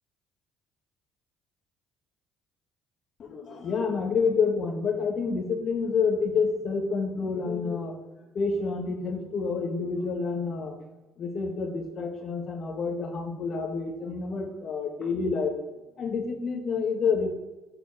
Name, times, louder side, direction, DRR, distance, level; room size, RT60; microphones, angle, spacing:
voice 1, 3.2-8.0 8.3-10.8 11.2-15.5 16.0-17.4, left 5 dB, 55° left, 3 dB, 1.7 m, -28 dB
7.1 x 4.2 x 5.5 m, 1.1 s
supercardioid pair, 70°, 0 cm